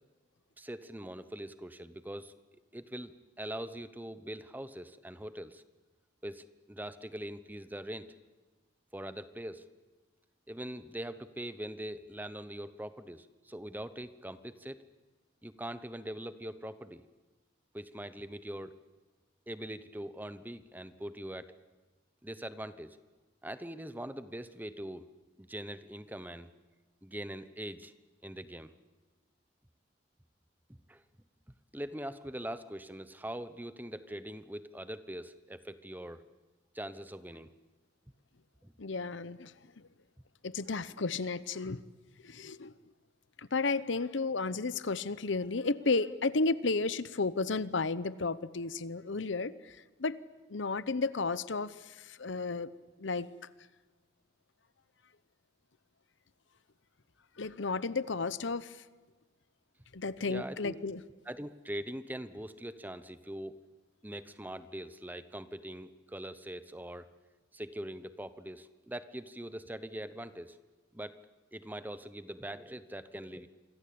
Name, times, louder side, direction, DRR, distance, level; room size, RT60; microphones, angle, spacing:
voice 1, 0.6-2.3 2.7-5.6 6.2-8.1 8.9-9.7 10.5-14.8 15.4-17.0 17.7-18.8 19.5-21.5 22.2-23.0 23.4-25.0 25.4-26.5 27.0-27.9 28.2-28.7 30.9-31.0 31.7-36.2 36.7-37.5 38.6-38.7 60.2-60.8 61.3-63.5 64.0-67.1 67.5-70.6 70.9-71.2 71.5-73.5, right 1 dB, 10° right, 12 dB, 1.0 m, -42 dB
voice 2, 38.8-39.5 40.4-41.8 42.2-42.7 43.4-50.2 50.5-52.7 53.0-53.3 57.4-58.8 59.9-61.0, left 3 dB, 75° left, 16 dB, 0.9 m, -33 dB
27.5 x 24.5 x 8.7 m, 1.3 s
head